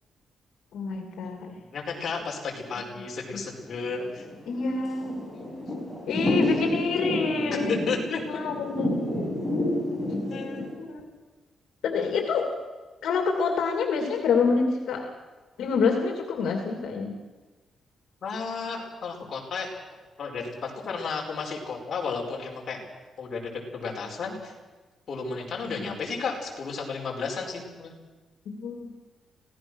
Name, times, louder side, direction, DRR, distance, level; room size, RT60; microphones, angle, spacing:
voice 1, 0.7-1.6 3.3-3.4 4.5-5.2 6.1-7.7 8.3-9.1 10.8-11.0 11.8-12.5 13.0-15.1 15.6-17.2 25.8-25.9 28.5-28.9, left 5 dB, 80° left, 3 dB, 2.8 m, -27 dB
voice 2, 1.6-4.3 5.3-5.6 7.7-8.2 10.3-10.7 18.2-19.7 20.2-22.8 23.2-24.5 25.1-27.9, left 4 dB, 45° left, -1 dB, 5.1 m, -33 dB
Thunder / Rain, 3.7-10.7, left 1 dB, ahead, 6.4 m, -29 dB
26.0 x 17.5 x 6.4 m, 1.3 s
cardioid pair, 140°, 0 cm